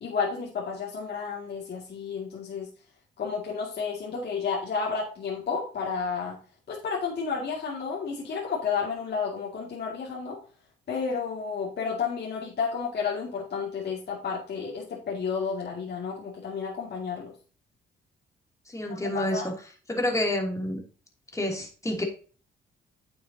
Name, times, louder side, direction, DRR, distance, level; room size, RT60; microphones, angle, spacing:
voice 1, 0.0-2.7 3.2-6.4 6.7-10.4 10.9-17.3 18.9-19.5, left 5 dB, 55° left, -3 dB, 2.2 m, -31 dB
voice 2, 18.7-19.5 19.9-20.8 21.3-22.0, left 1 dB, 15° left, 2 dB, 2.7 m, -28 dB
8.8 x 7.0 x 2.8 m, 0.39 s
cardioid pair, 90°, 20 cm